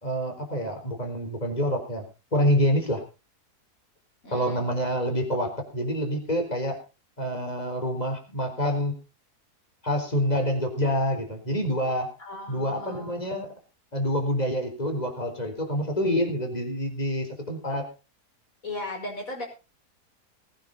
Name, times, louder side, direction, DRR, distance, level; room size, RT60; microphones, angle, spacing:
voice 1, 0.0-2.0 2.3-3.0 4.3-6.8 7.2-9.0 9.8-12.1 12.5-13.5 13.9-17.9, equal, 25° left, 4 dB, 4.2 m, -27 dB
voice 2, 4.2-4.6 12.2-13.5 18.6-19.5, left 2 dB, 55° left, 2 dB, 5.7 m, -37 dB
20.0 x 10.0 x 4.1 m, 0.31 s
omnidirectional pair, 1.7 m